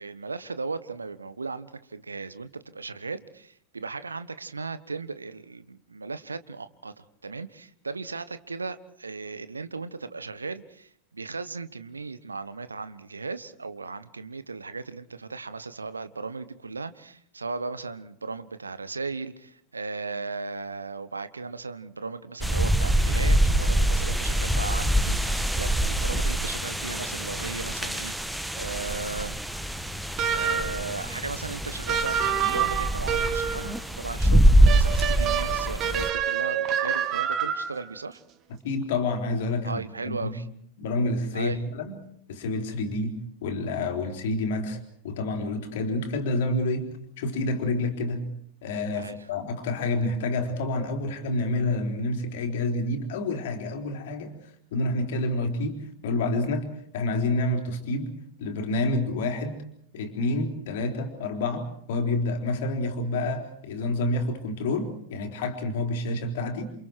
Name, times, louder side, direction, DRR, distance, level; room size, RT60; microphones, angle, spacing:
voice 1, 0.0-29.4 30.3-38.2 39.6-40.5 41.3-41.6 49.0-49.2, right 4 dB, 75° right, 14 dB, 1.3 m, -36 dB
sound 1, 22.4-36.1, right 1 dB, ahead, 1.4 m, -24 dB
sound 2, 30.2-30.9 31.9-33.7 34.7-37.9, right 8 dB, 35° right, 2.1 m, -27 dB
voice 2, 38.6-40.4 40.8-42.0 42.3-44.8 45.0-46.9 47.2-48.2 48.6-54.3 54.7-55.8 56.0-56.7 56.9-58.1 58.4-59.6 59.9-66.7, left 2 dB, 55° left, 5 dB, 4.1 m, -28 dB
29.0 x 27.5 x 4.7 m, 0.67 s
figure-of-eight pair, 90°, 0 cm